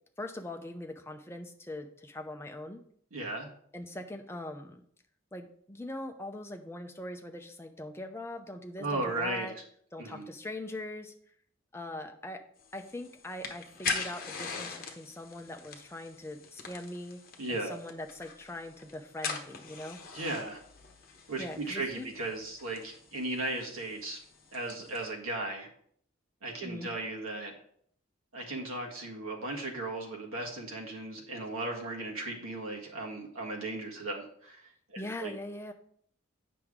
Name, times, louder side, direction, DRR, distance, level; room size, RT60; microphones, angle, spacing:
voice 1, 0.2-2.8 3.7-4.8 5.3-9.5 9.9-11.1 11.7-12.4 12.7-17.2 17.5-20.0 21.4-22.1 26.6-26.9 35.0-35.7, left 1 dB, 10° left, 4 dB, 0.6 m, -41 dB
voice 2, 3.1-3.5 8.8-9.5 10.0-10.3 17.4-17.7 20.1-20.6 21.3-24.2 24.5-25.7 26.4-27.6 28.3-34.6 34.9-35.3, right 2 dB, 90° right, -1 dB, 1.6 m, -36 dB
sound 1, 12.6-25.1, left 5 dB, 45° left, 1.0 m, -42 dB
8.3 x 5.9 x 3.7 m, 0.63 s
head